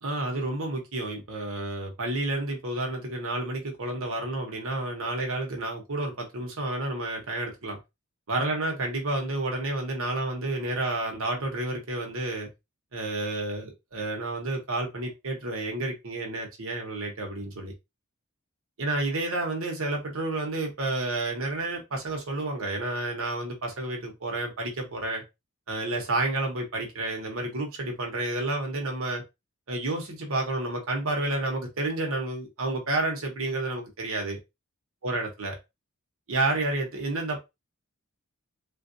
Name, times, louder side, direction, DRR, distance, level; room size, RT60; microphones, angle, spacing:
voice 1, 0.0-7.8 8.3-12.5 12.9-17.7 18.8-25.2 25.7-29.2 29.7-34.4 35.0-35.5 36.3-37.4, right 2 dB, 75° right, 1.0 m, -30 dB
3.4 x 2.5 x 2.6 m
head